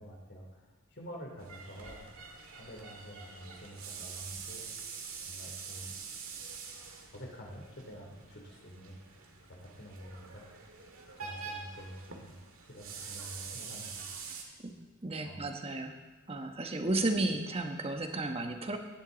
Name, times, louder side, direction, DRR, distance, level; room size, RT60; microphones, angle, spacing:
voice 1, 0.0-2.0 2.5-4.6 5.3-6.0 7.1-9.0 9.5-10.4 11.2-12.4 12.7-14.1 14.4-14.5 15.2-15.4, equal, 55° left, 0 dB, 3.0 m, -48 dB
sound 1, 1.4-14.4, right 5 dB, 75° right, 2.0 m, -45 dB
voice 2, 14.6-15.9 16.3-18.8, right 2 dB, 30° right, 4 dB, 1.2 m, -33 dB
17.5 x 11.0 x 4.0 m, 1.2 s
head